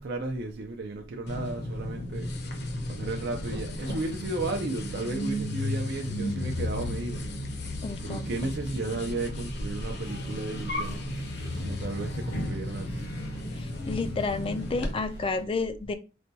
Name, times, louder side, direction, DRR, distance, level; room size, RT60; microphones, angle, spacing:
voice 1, 0.0-2.3 2.8-7.2 7.5-7.6 8.0-11.0 11.6-13.0, right 2 dB, 55° right, 0.5 m, -34 dB
sound 1, 1.3-14.9, left 1 dB, 60° left, 0.7 m, -34 dB
voice 2, 7.8-8.5 13.6-15.9, left 3 dB, 30° left, 0.3 m, -31 dB
sound 2, 8.4-10.4 10.6-12.6, equal, 20° right, 0.7 m, -47 dB
sound 3, 10.0-15.4, left 3 dB, 80° left, 1.1 m, -42 dB
4.1 x 2.2 x 2.7 m
head